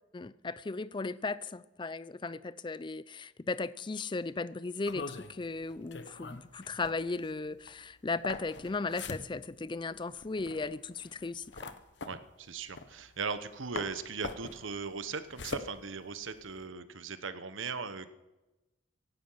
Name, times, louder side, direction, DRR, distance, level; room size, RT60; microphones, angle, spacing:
voice 1, 0.1-11.7, left 3 dB, 25° left, 0.4 m, -36 dB
sound 1, 4.8-13.5 13.8-16.6, left 3 dB, 60° left, 1.0 m, -43 dB
voice 2, 12.0-18.1, right 5 dB, 90° right, 1.1 m, -38 dB
16.0 x 11.5 x 5.7 m
head